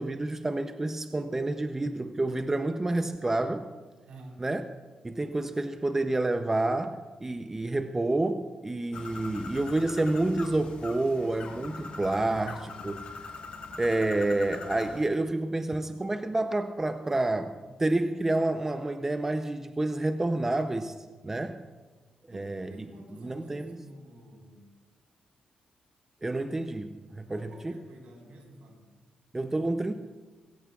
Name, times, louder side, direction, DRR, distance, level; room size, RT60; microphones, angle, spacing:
voice 1, 0.0-3.7 4.4-4.6 5.0-13.0 13.8-20.9 21.2-21.6 22.3-22.9 23.2-23.8 26.2-27.7 29.3-29.9, right 2 dB, 20° right, 8 dB, 0.6 m, -29 dB
voice 2, 4.0-4.4 22.3-24.7 27.3-28.8, right 1 dB, 75° right, 0 dB, 4.6 m, -49 dB
Bird, 8.9-15.0, left 4 dB, 65° left, 1.5 m, -42 dB
21.5 x 16.5 x 2.4 m, 1.3 s
cardioid pair, 105°, 2 cm